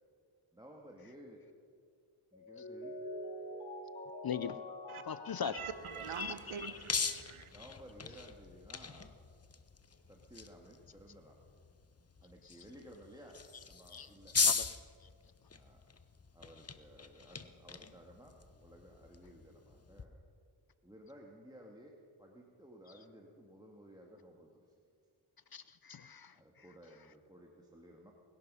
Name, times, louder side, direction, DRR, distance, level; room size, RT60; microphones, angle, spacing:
voice 1, 0.5-1.4 2.3-3.0 5.9-6.8 7.5-9.2 10.1-11.4 12.2-14.4 15.5-15.8 16.3-20.2 20.8-24.7 26.3-28.1, equal, 10° right, 0 dB, 1.9 m, -56 dB
Mallet percussion, 2.3-7.3, left 1 dB, 70° left, 4.1 m, -46 dB
voice 2, 4.2-4.6 5.1-5.6 6.2-6.7 13.9-14.1 14.4-14.6 25.5-26.3, left 8 dB, 45° left, 15 dB, 0.6 m, -40 dB
voice 3, 5.4-7.5, right 7 dB, 75° right, 10 dB, 1.1 m, -44 dB
sound 1, 5.6-20.0, left 5 dB, 30° left, 0.9 m, -40 dB
21.0 x 11.5 x 5.6 m, 2.2 s
cardioid pair, 50°, 50 cm